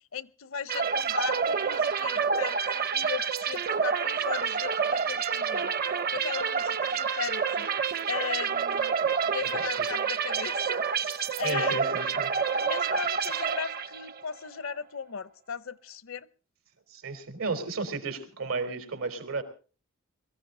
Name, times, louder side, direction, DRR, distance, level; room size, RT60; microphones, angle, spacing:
voice 1, 0.1-5.7 6.1-7.7 8.1-9.0 9.2-11.8 12.5-16.3, left 6 dB, 75° left, 18 dB, 0.8 m, -37 dB
sound 1, 0.7-14.2, right 6 dB, 45° right, 0.7 m, -28 dB
voice 2, 9.4-9.9 11.4-12.3 16.9-19.4, right 4 dB, 90° right, 8 dB, 3.8 m, -34 dB
23.0 x 15.0 x 3.8 m, 0.37 s
head